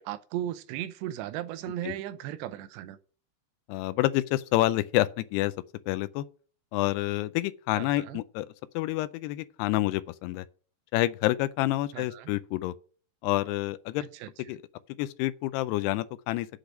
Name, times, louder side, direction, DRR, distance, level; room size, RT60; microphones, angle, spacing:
voice 1, 0.0-3.0 7.8-8.2 11.9-12.3 14.0-14.3, right 12 dB, 85° right, 2.8 m, -36 dB
voice 2, 3.7-5.5 5.9-6.3 6.7-8.5 8.7-10.5 10.9-12.7 13.2-14.1 14.5-14.6 15.0-16.5, left 16 dB, 85° left, 2.6 m, -28 dB
8.1 x 5.1 x 7.4 m
omnidirectional pair, 4.8 m